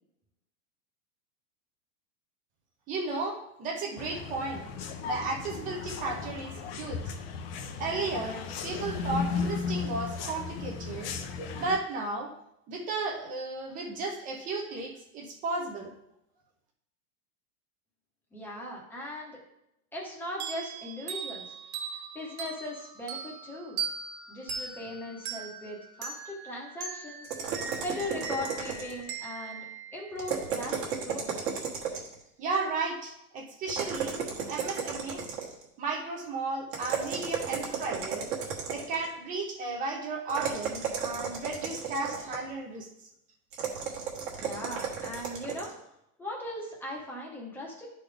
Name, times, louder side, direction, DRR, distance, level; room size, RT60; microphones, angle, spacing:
voice 1, 2.9-4.6 5.0-7.1 7.8-11.1 11.5-12.3 12.7-15.9 32.4-34.2 34.5-35.2 35.8-38.3 38.7-42.9, right 3 dB, 20° right, 1 dB, 0.8 m, -34 dB
sound 1, 4.0-11.8, left 5 dB, 40° left, 0.7 m, -35 dB
voice 2, 18.3-19.4 19.9-21.5 22.1-23.8 24.3-29.6 29.9-31.4 44.4-45.7 46.2-47.9, left 1 dB, 5° left, -2 dB, 1.0 m, -39 dB
sound 2, 20.4-30.7, right 5 dB, 70° right, 1.6 m, -40 dB
sound 3, 27.2-29.1 30.2-32.2 33.7-35.7 36.7-39.1 40.3-42.5 43.5-45.7, right 7 dB, 35° right, 1.5 m, -34 dB
11.5 x 4.1 x 3.4 m, 0.82 s
supercardioid pair, 165°, 45 cm